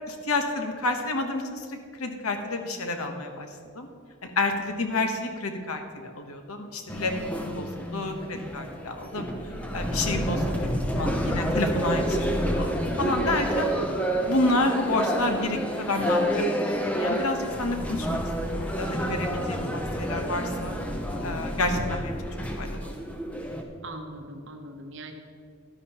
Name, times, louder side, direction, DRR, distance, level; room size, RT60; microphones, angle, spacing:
voice 1, 0.1-3.5 3.7-3.9 4.2-7.2 7.4-9.3 9.7-12.2 12.4-13.7 14.3-18.2 18.5-20.8 21.2-22.1 22.6-22.9, left 2 dB, 80° left, 5 dB, 1.0 m, -29 dB
sound 1, 6.9-23.6, equal, 5° left, 0.6 m, -29 dB
voice 2, 13.6-14.2 19.1-19.9 23.8-25.1, right 1 dB, 55° right, 4 dB, 0.8 m, -42 dB
11.5 x 10.0 x 2.9 m, 2.2 s
head